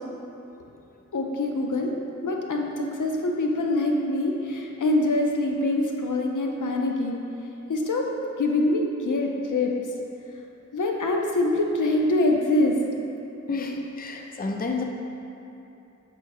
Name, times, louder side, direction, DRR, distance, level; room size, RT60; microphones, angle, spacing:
voice 1, 1.1-1.9 2.2-7.2 7.7-8.0 8.4-9.7 10.7-12.7, left 2 dB, 75° left, 1 dB, 0.7 m, -24 dB
voice 2, 13.5-14.8, left 3 dB, 30° left, 2 dB, 0.5 m, -30 dB
6.8 x 3.4 x 4.7 m, 2.9 s
wide cardioid pair, 80°, 31 cm